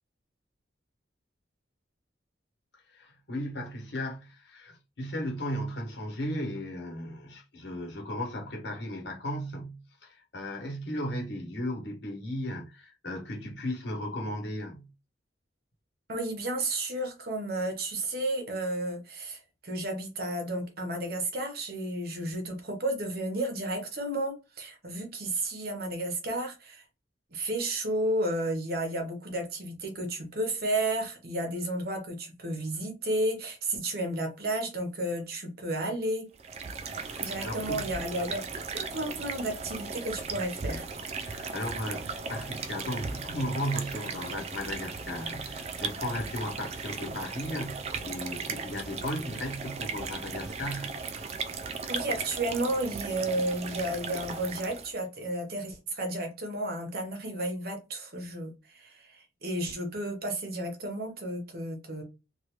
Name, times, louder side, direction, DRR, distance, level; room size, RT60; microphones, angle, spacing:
voice 1, 2.9-14.9 37.0-37.9 41.0-50.9, equal, 65° left, 1.1 m, -36 dB
voice 2, 16.1-26.8 27.3-36.3 37.2-40.9 51.9-62.0, right 1 dB, 50° right, 0.9 m, -32 dB
sound 1, 36.3-55.0, right 5 dB, 35° right, 0.3 m, -37 dB
3.2 x 2.4 x 2.9 m
head